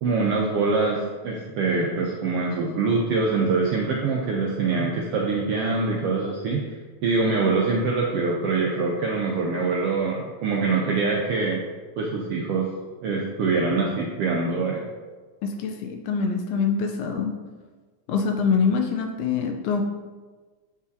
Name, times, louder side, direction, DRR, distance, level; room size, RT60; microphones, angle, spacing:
voice 1, 0.0-6.6 7.0-11.6 12.0-12.7 13.0-14.8, right 4 dB, 80° right, -2 dB, 1.3 m, -24 dB
voice 2, 15.4-17.3 18.1-19.8, left 5 dB, 80° left, 4 dB, 1.7 m, -24 dB
8.0 x 4.9 x 2.7 m, 1.4 s
omnidirectional pair, 3.4 m